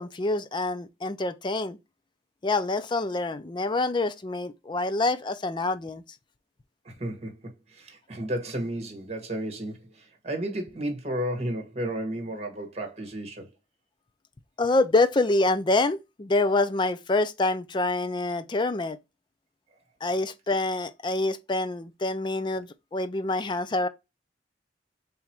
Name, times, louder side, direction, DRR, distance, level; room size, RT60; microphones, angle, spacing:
voice 1, 0.0-1.8 2.4-6.0 14.6-19.0 20.0-23.9, left 2 dB, 25° left, 0.4 m, -26 dB
voice 2, 6.8-7.3 7.7-13.4, right 1 dB, 40° right, 1.4 m, -33 dB
3.6 x 3.0 x 4.3 m
head